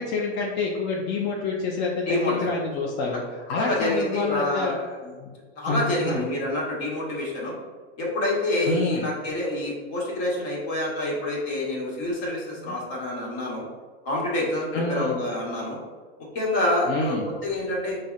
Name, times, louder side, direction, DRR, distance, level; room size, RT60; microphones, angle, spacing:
voice 1, 0.0-5.3 5.7-6.2 8.7-9.1 12.6-12.8 14.7-15.2 16.9-17.3, left 3 dB, 35° left, -2 dB, 0.5 m, -28 dB
voice 2, 2.1-2.5 3.6-4.7 5.6-7.6 8.0-13.7 14.0-15.8 16.3-18.0, left 1 dB, 55° left, -3 dB, 1.4 m, -27 dB
5.2 x 2.1 x 2.4 m, 1.4 s
hypercardioid pair, 115°, 33 cm